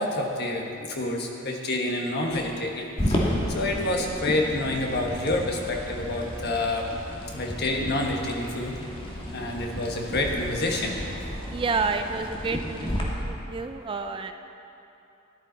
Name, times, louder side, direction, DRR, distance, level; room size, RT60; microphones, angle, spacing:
voice 1, 0.0-6.9 7.3-8.8 9.3-10.9, left 2 dB, 55° left, 1 dB, 1.4 m, -28 dB
sound 1, 3.0-13.0, equal, 25° left, 1.5 m, -32 dB
voice 2, 11.5-12.9 13.2-14.3, right 4 dB, 25° right, 7 dB, 0.4 m, -29 dB
13.5 x 11.0 x 4.1 m, 2.9 s
head